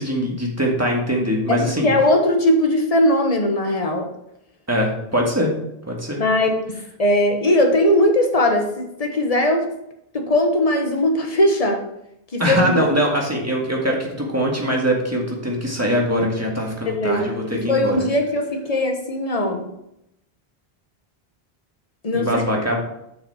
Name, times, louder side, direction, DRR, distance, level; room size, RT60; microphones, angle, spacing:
voice 1, 0.0-1.9 4.7-5.5 5.9-6.2 12.4-18.0 22.1-22.8, equal, 15° right, -1 dB, 1.7 m, -22 dB
voice 2, 1.5-4.1 6.2-9.7 10.1-11.8 12.3-12.8 16.9-19.7 22.0-22.4, left 1 dB, 40° left, 3 dB, 1.2 m, -19 dB
7.3 x 6.1 x 4.3 m, 0.81 s
omnidirectional pair, 1.0 m